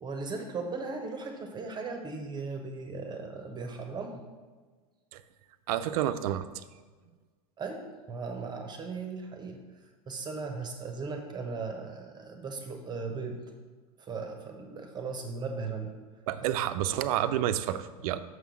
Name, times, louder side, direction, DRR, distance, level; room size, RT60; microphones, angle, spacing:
voice 1, 0.0-4.2 7.6-9.6 10.1-13.4 14.0-16.0 16.4-16.6, right 4 dB, 20° right, 4 dB, 0.9 m, -37 dB
voice 2, 5.7-6.5 16.3-18.2, right 11 dB, 70° right, 12 dB, 0.5 m, -29 dB
6.3 x 3.7 x 6.1 m, 1.4 s
hypercardioid pair, 110°, 20 cm